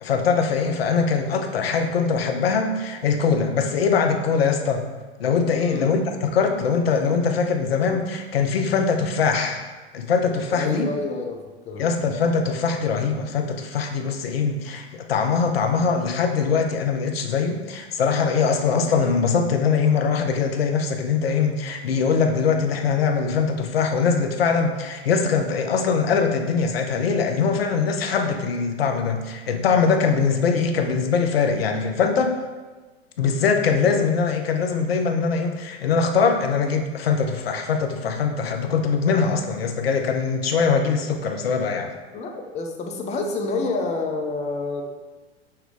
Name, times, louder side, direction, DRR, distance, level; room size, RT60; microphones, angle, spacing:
voice 1, 0.0-4.8 5.2-9.6 9.9-10.9 11.8-32.3 33.2-41.9, left 5 dB, 70° left, 5 dB, 0.5 m, -22 dB
voice 2, 5.5-6.0 10.5-11.9 42.1-44.8, left 3 dB, 20° left, 2 dB, 0.5 m, -28 dB
5.5 x 2.2 x 3.6 m, 1.3 s
figure-of-eight pair, 80°, 31 cm